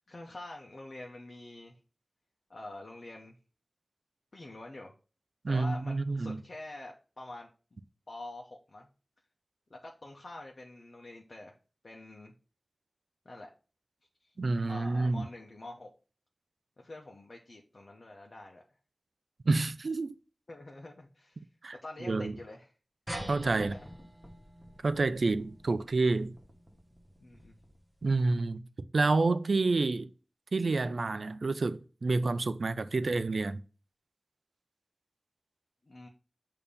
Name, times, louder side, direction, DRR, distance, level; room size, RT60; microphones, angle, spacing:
voice 1, 0.0-1.8 2.5-3.4 4.3-4.9 5.5-7.5 8.1-8.9 9.7-11.5 11.8-12.3 13.2-13.5 14.2-14.3 14.7-15.9 16.8-18.6 20.5-21.4 21.8-22.7 23.6-23.9 27.2-27.6 35.9-36.1, left 2 dB, 65° left, 0.9 m, -46 dB
voice 2, 5.4-6.4 14.4-15.3 19.5-20.2 21.6-21.8 22.0-22.4 23.3-23.7 24.8-26.3 28.0-28.6 28.9-30.1 30.5-33.6, right 3 dB, 85° right, 0.4 m, -28 dB
sound 1, 23.1-27.9, right 1 dB, 20° right, 1.0 m, -46 dB
6.8 x 2.9 x 5.3 m
wide cardioid pair, 55°, 0 cm